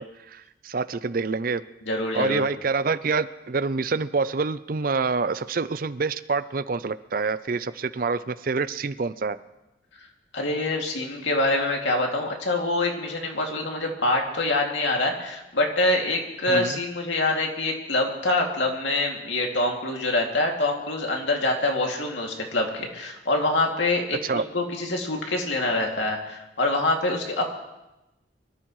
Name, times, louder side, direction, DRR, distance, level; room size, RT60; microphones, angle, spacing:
voice 1, 0.0-1.6 2.1-9.4 16.5-16.8 24.2-24.4, right 4 dB, 45° right, 14 dB, 0.5 m, -27 dB
voice 2, 1.8-2.5 10.3-27.4, left 2 dB, 70° left, 1 dB, 2.5 m, -25 dB
25.0 x 14.0 x 3.2 m, 0.97 s
head